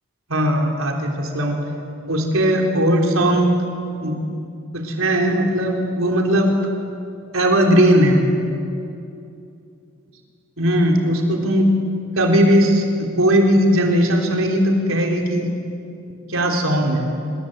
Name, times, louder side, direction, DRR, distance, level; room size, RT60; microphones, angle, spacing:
voice 1, 0.3-1.6 2.1-3.5 4.0-4.2 4.7-6.6 7.3-8.2 10.6-11.7 12.2-15.5 16.3-17.1, equal, 85° right, 2 dB, 3.7 m, -18 dB
27.0 x 21.0 x 8.0 m, 2.6 s
head